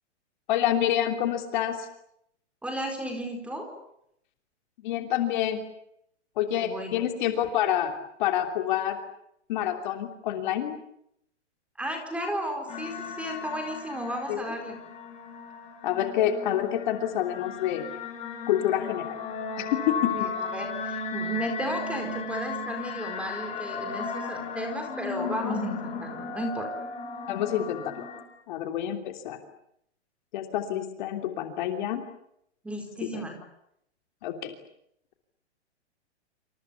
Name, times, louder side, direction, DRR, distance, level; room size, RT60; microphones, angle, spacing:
voice 1, 0.5-1.9 4.8-5.6 6.4-7.9 8.2-9.0 9.5-10.7 14.3-14.4 15.8-17.9 18.5-19.1 19.6-20.1 27.3-28.0 28.5-29.4 30.3-32.0 33.0-33.2 34.2-34.5, left 11 dB, 40° left, 5 dB, 3.1 m, -27 dB
voice 2, 2.6-3.7 6.5-6.9 11.8-14.8 20.1-26.7 32.6-33.4, equal, 5° right, 4 dB, 4.6 m, -34 dB
sound 1, 12.7-28.2, left 4 dB, 20° left, 5.7 m, -35 dB
27.5 x 27.5 x 7.1 m, 0.75 s
hypercardioid pair, 160°, 35 cm